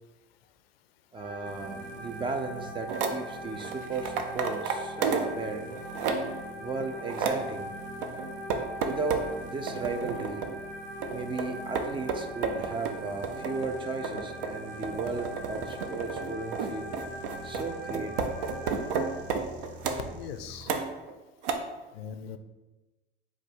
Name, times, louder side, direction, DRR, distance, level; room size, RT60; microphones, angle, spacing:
voice 1, 1.1-5.7 6.6-7.7 8.8-10.5 11.1-16.9 17.4-18.3, right 3 dB, 15° right, 6 dB, 0.4 m, -35 dB
sound 1, 1.2-19.2, equal, 85° right, 1.5 m, -42 dB
sound 2, 1.4-20.6, right 1 dB, 40° right, 1.0 m, -47 dB
sound 3, 2.9-3.2 3.6-5.4 5.7-6.4 6.8-7.5 8.0-9.3 9.7-10.6 11.0-20.1 20.6-21.1 21.4-21.5, right 5 dB, 70° right, 0.6 m, -32 dB
voice 2, 20.2-20.7 21.9-22.4, left 7 dB, 85° left, 9 dB, 0.5 m, -40 dB
4.5 x 2.3 x 4.4 m, 1.1 s
hypercardioid pair, 95°, 29 cm